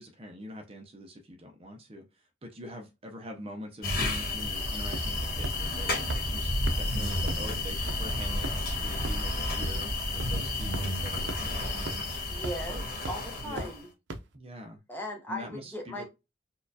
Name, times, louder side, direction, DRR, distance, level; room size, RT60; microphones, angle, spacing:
voice 1, 0.0-6.0 6.3-12.3 12.7-12.9 13.4-13.7 14.3-14.8 15.3-16.0, equal, 30° right, 0.5 m, -44 dB
sound 1, 3.8-13.8, left 2 dB, 55° left, 1.3 m, -31 dB
sound 2, 4.9-5.2 5.4-5.5 6.1-6.2 6.7-6.8 7.3-7.4 7.9-8.0 8.4-8.7 9.0-9.1 9.6-9.7 10.2-10.3 10.7-10.8 11.3-11.4 11.9-12.0 12.4-12.7 13.0-13.1 13.6-13.7 14.1-14.2, right 2 dB, 80° right, 0.5 m, -34 dB
voice 2, 12.3-12.8 13.1-13.9 14.9-16.1, equal, 10° left, 0.8 m, -37 dB
4.3 x 2.3 x 2.6 m
head